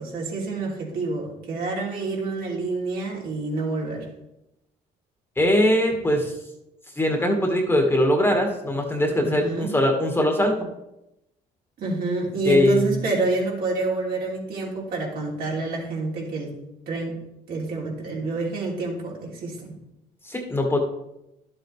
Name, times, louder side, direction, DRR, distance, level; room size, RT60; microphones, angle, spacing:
voice 1, 0.0-4.1 9.2-9.7 11.8-16.5 16.9-17.2 17.5-19.7, right 3 dB, 60° right, -3 dB, 3.2 m, -28 dB
voice 2, 5.4-6.3 7.0-10.5 12.5-12.9 20.3-20.8, left 1 dB, 15° left, 2 dB, 1.6 m, -21 dB
11.5 x 7.5 x 3.3 m, 0.88 s
cardioid pair, 110°, 17 cm